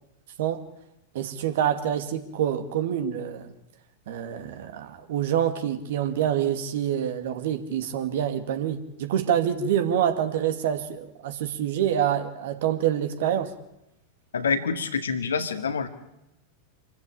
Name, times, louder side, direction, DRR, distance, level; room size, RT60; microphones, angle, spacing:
voice 1, 1.1-3.5 4.1-13.5, right 9 dB, 55° right, 8 dB, 2.3 m, -26 dB
voice 2, 14.3-15.9, left 5 dB, 70° left, 8 dB, 2.1 m, -26 dB
27.0 x 14.5 x 8.8 m, 0.88 s
figure-of-eight pair, 90°, 0 cm